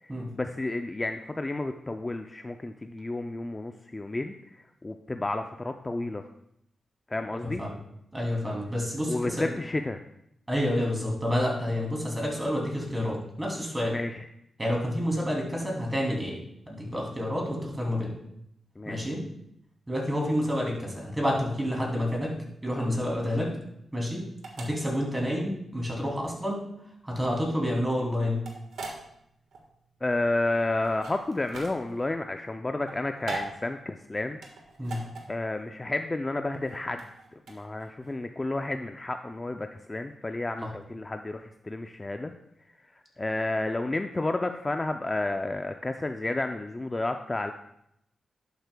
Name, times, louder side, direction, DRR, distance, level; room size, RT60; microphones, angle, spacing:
voice 1, 0.0-6.2 7.1-7.6 9.1-10.0 13.9-14.3 18.8-19.2 30.0-34.4 35.3-42.3 42.8-47.5, left 2 dB, 25° left, 6 dB, 0.4 m, -31 dB
voice 2, 7.4-7.7 8.1-9.5 10.5-13.9 14.6-16.4 16.7-18.2 18.9-19.2 19.9-22.3 22.6-23.5 23.9-24.2 24.6-26.6 27.0-28.4 34.8-35.0, equal, 15° right, -2 dB, 2.7 m, -29 dB
sound 1, 22.7-38.1, right 3 dB, 80° right, 1.4 m, -43 dB
11.0 x 8.0 x 2.2 m, 0.78 s
cardioid pair, 90°, 0 cm